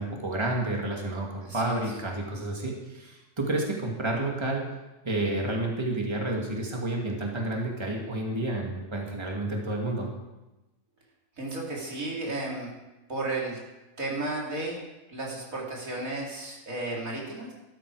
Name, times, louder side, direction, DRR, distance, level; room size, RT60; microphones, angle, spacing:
voice 1, 0.0-4.6 5.0-10.1, right 2 dB, 20° right, -1 dB, 2.3 m, -30 dB
voice 2, 1.4-1.8 11.4-12.7 13.1-13.6 14.0-14.8 15.1-17.5, right 2 dB, 80° right, -3 dB, 3.8 m, -33 dB
16.0 x 13.0 x 4.9 m, 1.0 s
omnidirectional pair, 1.4 m